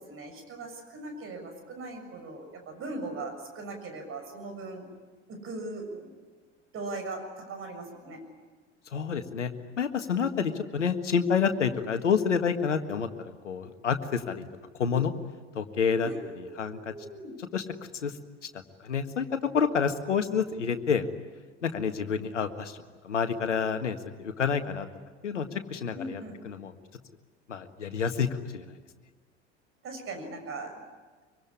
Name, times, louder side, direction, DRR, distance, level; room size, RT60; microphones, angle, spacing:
voice 1, 0.0-4.9 5.3-6.1 6.7-8.2 16.0-17.3 25.9-26.4 29.8-30.7, right 2 dB, 35° right, 5 dB, 7.0 m, -39 dB
voice 2, 8.9-9.5 9.8-13.1 13.4-14.4 14.7-15.1 15.5-16.1 16.4-16.9 17.4-17.6 17.9-18.2 18.8-19.3 19.5-21.1 21.6-24.9 25.2-26.7 27.5-28.7, left 6 dB, 75° left, 8 dB, 1.8 m, -28 dB
24.5 x 24.0 x 9.9 m, 1.4 s
figure-of-eight pair, 75°, 36 cm